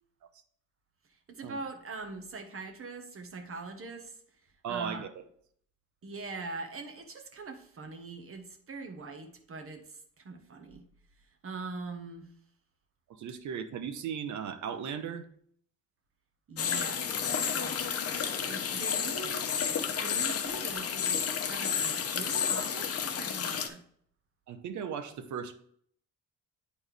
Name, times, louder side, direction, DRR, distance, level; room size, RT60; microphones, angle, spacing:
voice 1, 1.3-4.2 4.7-5.1 6.0-10.8 11.4-12.3 16.5-19.4 20.0-23.8, right 4 dB, 45° right, 5 dB, 1.3 m, -42 dB
voice 2, 4.6-5.3 13.2-15.2 24.5-25.5, right 7 dB, 70° right, 9 dB, 0.9 m, -37 dB
sound 1, 16.6-23.7, left 7 dB, 50° left, 0.8 m, -31 dB
9.3 x 4.3 x 3.4 m, 0.62 s
cardioid pair, 90°, 30 cm